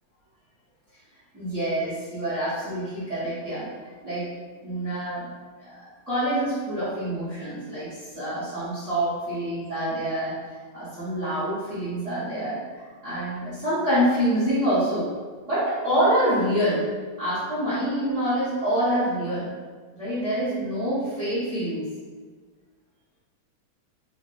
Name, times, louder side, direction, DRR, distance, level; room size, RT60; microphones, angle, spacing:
voice 1, 1.3-3.6 4.0-4.3 4.6-5.2 5.6-5.8 6.1-15.1 15.5-16.8 17.2-19.5 19.9-21.9, right 1 dB, 50° right, -13 dB, 0.9 m, -26 dB
5.2 x 2.3 x 2.4 m, 1.4 s
omnidirectional pair, 3.4 m